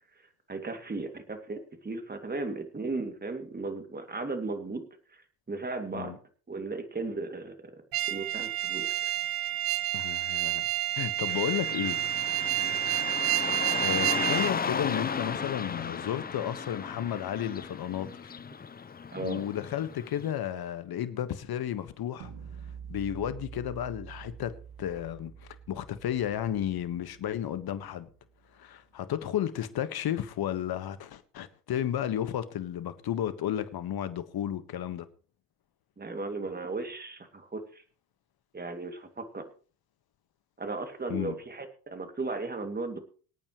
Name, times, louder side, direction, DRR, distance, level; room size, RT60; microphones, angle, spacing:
voice 1, 0.5-5.2 5.5-6.2 6.5-7.8 8.1-9.1 12.6-12.9 19.1-19.4 36.0-37.8 38.5-39.4 40.6-43.0, right 3 dB, 20° right, 2.5 m, -36 dB
sound 1, 7.9-14.5, right 14 dB, 45° right, 0.9 m, -29 dB
voice 2, 9.9-10.6 11.0-12.0 13.5-18.4 19.2-22.3 22.9-25.3 25.7-28.1 28.5-35.1 41.1-41.4, left 10 dB, 50° left, 1.6 m, -33 dB
Car passing by / Traffic noise roadway noise, 11.3-20.3, left 6 dB, 20° left, 0.7 m, -35 dB
sound 2, 22.2-28.2, right 7 dB, 70° right, 1.9 m, -47 dB
25.0 x 8.9 x 3.2 m
hypercardioid pair, 70°, 49 cm